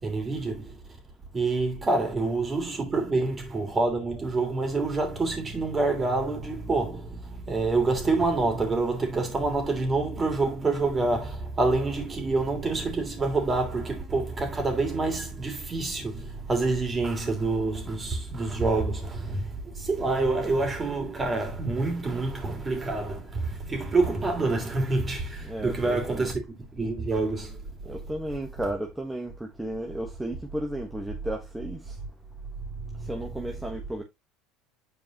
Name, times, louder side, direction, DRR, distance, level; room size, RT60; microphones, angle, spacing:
voice 1, 0.0-0.8 1.3-26.4 26.7-28.0 32.9-33.1, right 3 dB, 25° right, 3.0 m, -27 dB
voice 2, 25.4-26.3 27.8-31.9 33.0-34.0, right 1 dB, 5° right, 1.3 m, -34 dB
7.9 x 4.7 x 3.0 m
hypercardioid pair, 85°, 0 cm